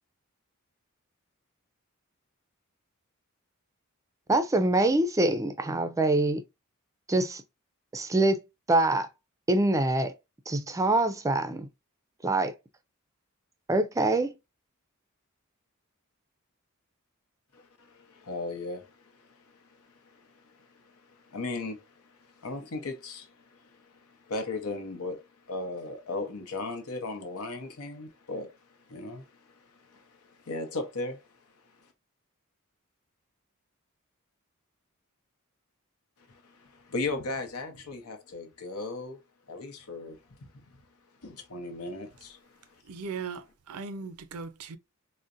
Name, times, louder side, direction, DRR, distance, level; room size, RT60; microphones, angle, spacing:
voice 1, 4.3-6.4 7.1-7.4 7.9-8.4 8.7-9.1 9.5-10.1 10.5-11.7 12.2-12.5 13.7-14.3, right 2 dB, 15° right, 0.4 m, -24 dB
voice 2, 17.5-19.3 19.7-28.5 28.9-31.2 36.3-39.2 39.5-40.2 41.2-42.6, left 2 dB, 90° left, 0.8 m, -37 dB
voice 3, 42.8-44.8, right 5 dB, 85° right, 0.5 m, -38 dB
3.9 x 2.1 x 2.4 m
head